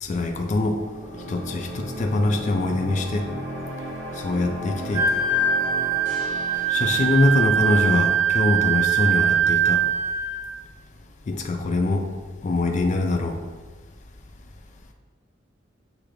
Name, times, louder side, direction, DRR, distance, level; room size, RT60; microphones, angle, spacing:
voice 1, 0.0-0.8 1.3-3.3 4.2-5.0 6.7-9.8 11.3-12.0 12.4-13.4, left 2 dB, 35° left, 4 dB, 0.3 m, -23 dB
sound 1, 0.6-7.1, equal, 65° right, 1.2 m, -35 dB
Wind instrument woodwind instrument, 4.9-10.4, right 7 dB, 40° right, 1.3 m, -22 dB
6.6 x 2.5 x 3.0 m, 1.4 s
head